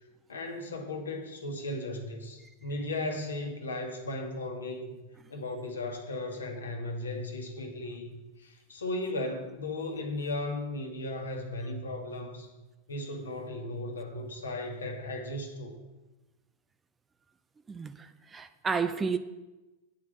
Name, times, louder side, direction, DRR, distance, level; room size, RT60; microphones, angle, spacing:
voice 1, 0.3-12.5 12.9-15.7, left 2 dB, 70° left, 3 dB, 1.4 m, -36 dB
voice 2, 17.7-19.2, right 5 dB, 15° right, 11 dB, 0.4 m, -31 dB
9.7 x 4.7 x 7.4 m, 1.1 s
figure-of-eight pair, 90°, 0 cm